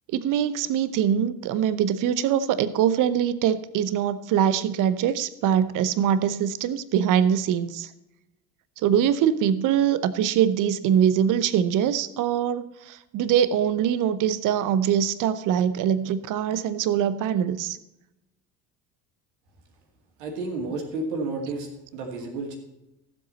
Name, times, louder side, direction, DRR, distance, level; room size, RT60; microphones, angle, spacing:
voice 1, 0.1-7.9 8.8-17.8, right 9 dB, 40° right, 15 dB, 0.8 m, -23 dB
voice 2, 20.2-22.6, right 3 dB, 65° right, 2 dB, 2.4 m, -31 dB
15.5 x 7.6 x 4.2 m, 0.93 s
figure-of-eight pair, 60°, 50 cm